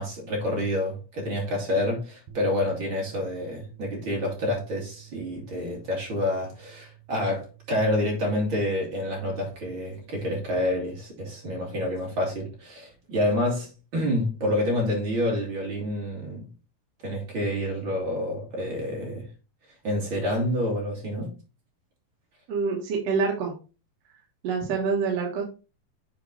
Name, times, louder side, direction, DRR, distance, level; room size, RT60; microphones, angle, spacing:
voice 1, 0.0-16.5 17.0-19.3 19.8-21.3, left 1 dB, 35° right, 2.7 m, -28 dB
sound 1, 2.3-8.5, right 14 dB, 75° right, 2.8 m, -49 dB
voice 2, 22.5-23.5 24.4-25.4, right 5 dB, 60° right, 1.9 m, -26 dB
8.1 x 4.6 x 3.9 m
omnidirectional pair, 4.2 m